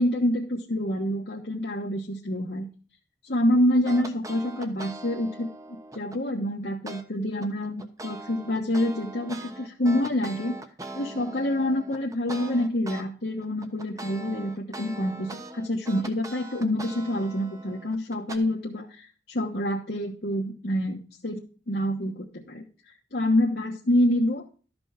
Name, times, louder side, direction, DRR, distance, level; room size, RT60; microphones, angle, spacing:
voice 1, 0.0-2.7 3.2-10.6 10.9-22.6 23.1-24.4, left 1 dB, 60° left, -2 dB, 1.3 m, -27 dB
sound 1, 3.9-6.2 6.9-7.0 7.4-13.1 13.4-18.4, right 2 dB, 20° right, 1.0 m, -41 dB
13.0 x 5.4 x 5.9 m, 0.37 s
head